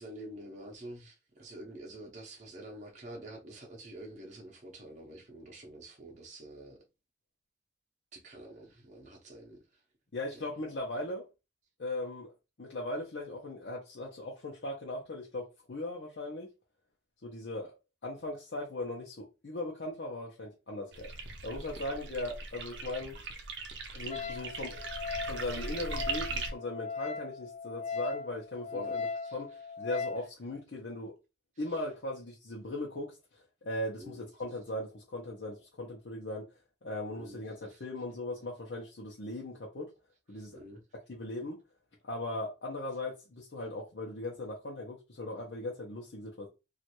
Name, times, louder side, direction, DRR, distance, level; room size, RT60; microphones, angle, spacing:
voice 1, 0.0-6.8 8.1-9.6 28.7-28.9 34.0-34.2 37.1-37.4 40.5-40.8, right 1 dB, 40° right, 0.7 m, -47 dB
voice 2, 10.1-11.3 11.8-12.3 12.6-16.5 17.2-17.7 18.0-21.1 21.4-23.2 23.9-24.9 25.3-29.5 29.8-31.1 31.6-36.4 36.8-39.9 40.3-40.6 41.1-41.6 42.0-46.5, left 1 dB, 70° left, 0.7 m, -38 dB
sound 1, 20.9-26.5, right 3 dB, 80° right, 0.6 m, -39 dB
Wind instrument woodwind instrument, 24.1-30.3, left 5 dB, 40° left, 0.3 m, -38 dB
3.1 x 2.4 x 2.9 m
head